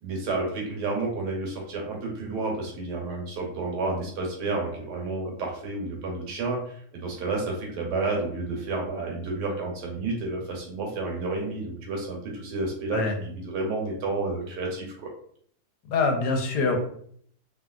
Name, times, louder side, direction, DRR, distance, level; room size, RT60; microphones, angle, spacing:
voice 1, 0.0-15.1, right 3 dB, 80° right, 0 dB, 1.4 m, -30 dB
voice 2, 15.9-16.8, left 4 dB, 90° left, 3 dB, 1.2 m, -24 dB
2.8 x 2.7 x 2.3 m, 0.62 s
omnidirectional pair, 1.8 m